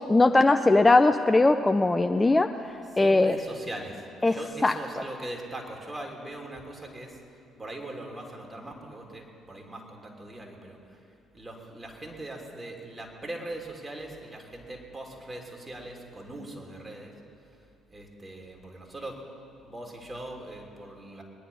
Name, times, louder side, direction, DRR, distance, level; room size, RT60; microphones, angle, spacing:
voice 1, 0.1-2.5 3.0-3.3 4.2-4.4 4.6-4.7, left 2 dB, 20° left, 8 dB, 0.5 m, -20 dB
voice 2, 2.9-7.2 7.6-11.0 11.3-17.1 17.9-19.2 19.6-21.2, right 1 dB, 20° right, 1 dB, 3.1 m, -40 dB
21.5 x 10.0 x 5.6 m, 2.7 s
figure-of-eight pair, 50°, 0 cm